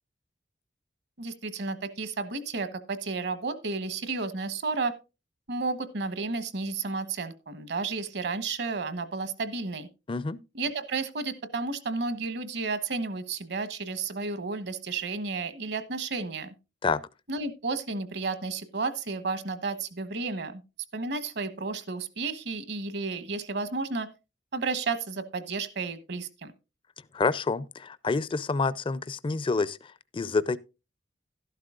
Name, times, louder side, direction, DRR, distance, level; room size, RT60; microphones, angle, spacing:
voice 1, 1.2-4.9 5.5-9.9 10.5-16.5 17.3-20.6 20.9-24.1 24.5-26.5, right 4 dB, 65° right, 1.1 m, -32 dB
voice 2, 10.1-10.4 16.8-17.0 27.1-30.6, left 4 dB, 30° left, 0.4 m, -28 dB
12.5 x 11.5 x 2.4 m
head